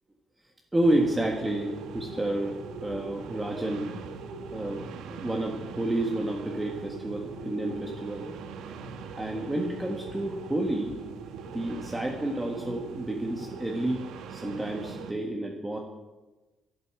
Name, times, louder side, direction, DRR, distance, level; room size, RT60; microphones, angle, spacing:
voice 1, 0.7-3.9 4.5-8.3 9.1-11.0 11.5-15.8, right 1 dB, 10° right, 1 dB, 1.5 m, -30 dB
sound 1, 0.8-15.1, right 5 dB, 85° right, 1.6 m, -41 dB
12.0 x 11.5 x 8.8 m, 1.2 s
cardioid pair, 155°, 0 cm